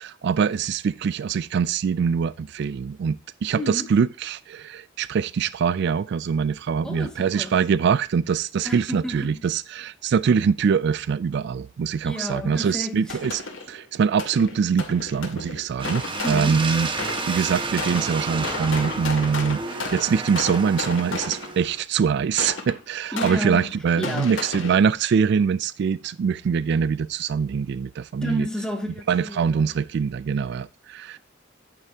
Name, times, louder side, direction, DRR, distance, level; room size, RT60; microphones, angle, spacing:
voice 1, 0.0-28.5 29.1-31.2, right 6 dB, 60° right, 0.3 m, -23 dB
voice 2, 3.5-3.9 6.8-7.6 8.6-9.4 12.0-13.2 16.2-16.6 23.1-24.3 28.2-29.6, equal, 5° left, 2.0 m, -31 dB
sound 1, 13.1-13.8 14.2-17.4 17.8-21.7 22.4-24.8, left 3 dB, 80° left, 2.3 m, -33 dB
sound 2, 15.8-21.8, right 3 dB, 25° right, 1.2 m, -31 dB
9.8 x 9.2 x 2.8 m
head